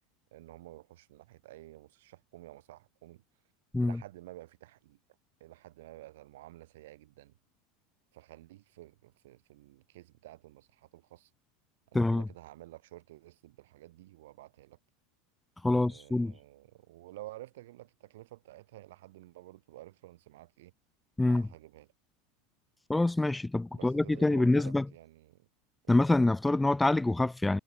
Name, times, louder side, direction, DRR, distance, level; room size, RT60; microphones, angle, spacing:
voice 1, 0.3-3.2 3.8-5.0 5.4-7.3 8.1-11.3 11.9-14.8 15.7-20.7 21.2-21.9 23.7-25.5 25.8-26.0, right 16 dB, 70° right, 5.9 m, -51 dB
voice 2, 15.6-16.3 21.2-21.5 22.9-24.9 25.9-27.6, left 2 dB, 10° left, 0.7 m, -26 dB
hypercardioid pair, 85°, 0 cm